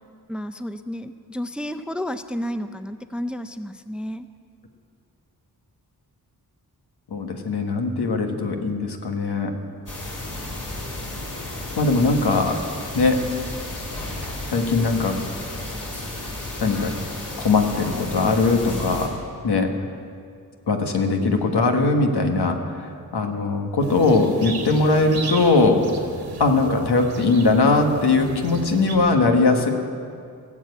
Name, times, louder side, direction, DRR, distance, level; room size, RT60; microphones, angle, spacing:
voice 1, 0.3-4.3, equal, 5° right, 10 dB, 0.5 m, -31 dB
voice 2, 7.1-9.5 11.8-12.6 12.9-13.2 14.5-15.2 16.6-16.9 17.4-19.1 19.4-19.7 20.7-25.8 26.4-29.7, left 3 dB, 80° left, 4 dB, 1.5 m, -20 dB
sound 1, 9.9-19.1, left 1 dB, 50° left, 3.5 m, -33 dB
sound 2, 23.8-29.0, right 4 dB, 80° right, 1.7 m, -33 dB
17.5 x 7.5 x 8.1 m, 2.3 s
wide cardioid pair, 80°, 39 cm